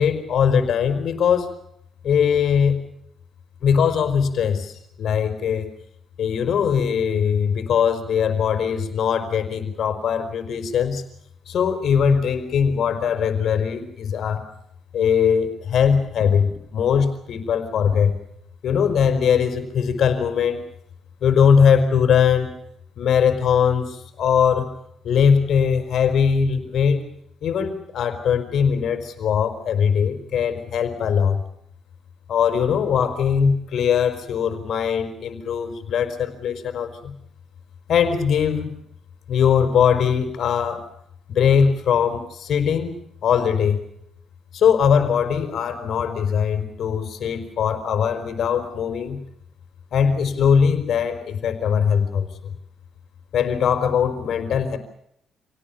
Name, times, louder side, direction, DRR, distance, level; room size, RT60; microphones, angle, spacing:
voice 1, 0.0-1.5 2.0-2.8 3.6-5.7 6.2-11.0 11.5-14.5 14.9-18.1 18.6-20.6 21.2-22.5 23.0-24.7 25.0-27.0 27.4-31.4 32.3-37.1 37.9-38.8 39.3-40.9 41.3-43.8 44.5-49.2 49.9-52.3 53.3-54.8, left 7 dB, 65° left, 9 dB, 4.7 m, -20 dB
28.0 x 18.0 x 7.2 m, 0.72 s
cardioid pair, 90°, 0 cm